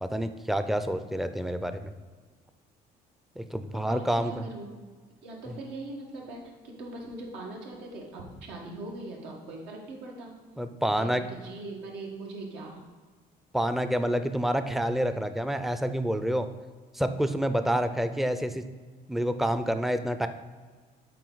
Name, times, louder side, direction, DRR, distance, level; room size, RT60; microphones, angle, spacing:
voice 1, 0.0-1.9 3.4-4.5 5.5-5.6 10.6-11.2 13.5-16.5 16.9-18.7 19.1-20.3, equal, ahead, 9 dB, 0.4 m, -28 dB
voice 2, 3.9-4.7 5.2-10.3 10.9-12.8, right 2 dB, 90° right, -1 dB, 1.6 m, -41 dB
7.6 x 4.7 x 3.9 m, 1.4 s
cardioid pair, 110°, 17 cm